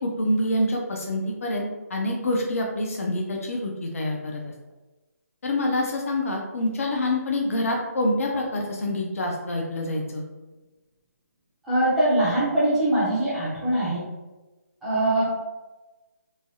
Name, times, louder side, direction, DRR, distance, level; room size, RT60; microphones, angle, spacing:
voice 1, 0.0-4.4 5.4-10.2, left 1 dB, 60° left, 0 dB, 0.5 m, -26 dB
voice 2, 11.6-14.0 14.8-15.2, right 1 dB, ahead, -12 dB, 0.5 m, -22 dB
3.1 x 2.3 x 2.7 m, 1.1 s
hypercardioid pair, 170°, 9 cm